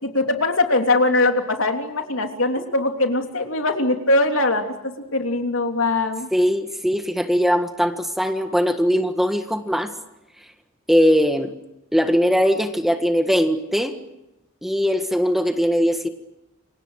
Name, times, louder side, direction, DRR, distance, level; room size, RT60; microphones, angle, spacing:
voice 1, 0.0-4.7 5.1-6.3, left 2 dB, 75° left, 4 dB, 3.2 m, -21 dB
voice 2, 6.3-9.9 10.9-11.5 11.9-14.0 14.6-16.1, equal, ahead, 7 dB, 1.6 m, -20 dB
29.0 x 25.5 x 6.5 m, 0.91 s
head